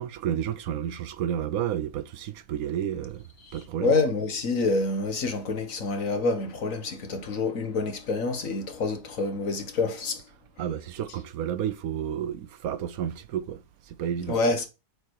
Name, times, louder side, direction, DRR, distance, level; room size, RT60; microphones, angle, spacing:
voice 1, 0.0-3.2 3.5-3.9 10.6-14.4, right 10 dB, 70° right, 1.1 m, -31 dB
voice 2, 3.4-10.3 14.3-14.6, left 3 dB, 60° left, 1.7 m, -27 dB
7.4 x 4.7 x 4.5 m
omnidirectional pair, 1.7 m